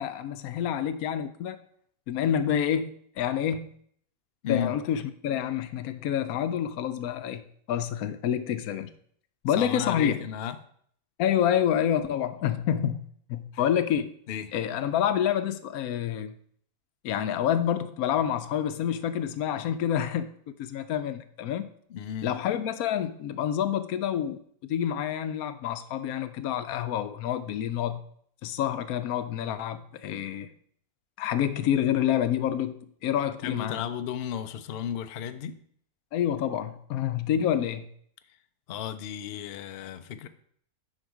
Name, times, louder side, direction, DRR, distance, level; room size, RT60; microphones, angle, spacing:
voice 1, 0.0-1.6 2.1-3.7 4.5-7.4 7.7-8.9 9.4-10.2 11.2-14.1 14.5-16.3 17.0-20.3 20.6-21.7 22.2-24.4 24.7-28.0 28.4-30.5 31.2-33.8 36.1-37.9, left 9 dB, 80° left, 1.1 m, -28 dB
voice 2, 9.5-10.6 14.3-14.5 21.9-22.4 33.4-35.5 38.7-40.3, left 9 dB, 60° left, 0.6 m, -33 dB
6.5 x 5.8 x 4.7 m
omnidirectional pair, 1.5 m